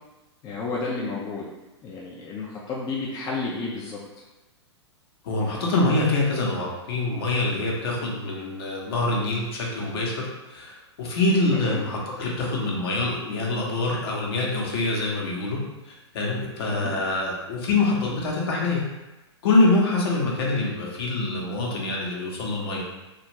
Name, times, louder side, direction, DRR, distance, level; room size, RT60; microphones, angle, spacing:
voice 1, 0.4-1.5 1.8-4.0 11.5-11.8 16.7-17.0, left 3 dB, 25° left, -4 dB, 0.4 m, -31 dB
voice 2, 5.2-15.6 15.8-18.8 19.4-22.8, left 2 dB, 60° left, -2 dB, 0.8 m, -25 dB
2.4 x 2.4 x 3.0 m, 1.0 s
hypercardioid pair, 115°, 15 cm